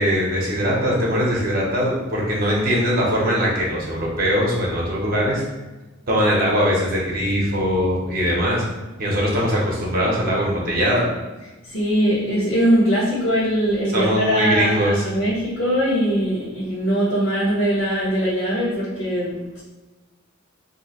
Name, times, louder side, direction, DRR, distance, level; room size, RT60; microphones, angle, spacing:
voice 1, 0.0-5.4 6.1-8.6 9.0-11.1 13.9-15.1, equal, 45° right, -4 dB, 0.8 m, -21 dB
voice 2, 11.6-19.6, equal, 65° left, -10 dB, 1.0 m, -21 dB
2.7 x 2.1 x 4.1 m, 1.1 s
head